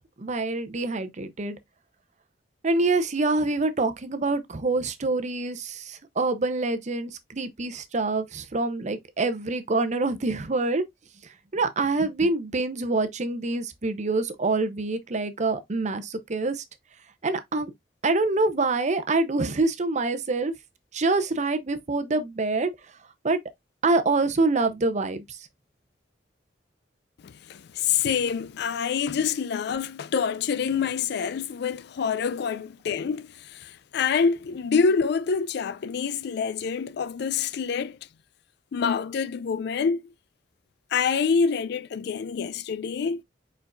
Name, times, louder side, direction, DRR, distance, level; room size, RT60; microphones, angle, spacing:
voice 1, 0.2-1.6 2.6-10.8 11.5-16.6 17.2-17.7 18.0-20.5 20.9-22.7 23.2-23.4 23.8-25.4, right 3 dB, 40° right, 0.7 m, -26 dB
voice 2, 27.2-38.0 38.7-40.0 40.9-43.2, left 6 dB, 65° left, 0.4 m, -26 dB
4.6 x 4.5 x 2.4 m
head